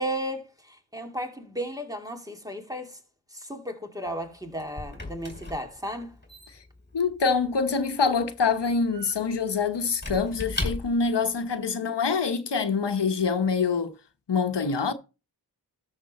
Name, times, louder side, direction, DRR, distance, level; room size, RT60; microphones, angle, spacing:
voice 1, 0.0-3.0 3.3-6.1, right 1 dB, 10° right, 2.5 m, -34 dB
Squeak / Wood, 4.1-11.2, left 2 dB, 25° left, 3.4 m, -38 dB
voice 2, 6.9-13.9 14.3-14.9, left 5 dB, 80° left, 1.1 m, -25 dB
13.0 x 6.6 x 4.2 m
wide cardioid pair, 60°, 41 cm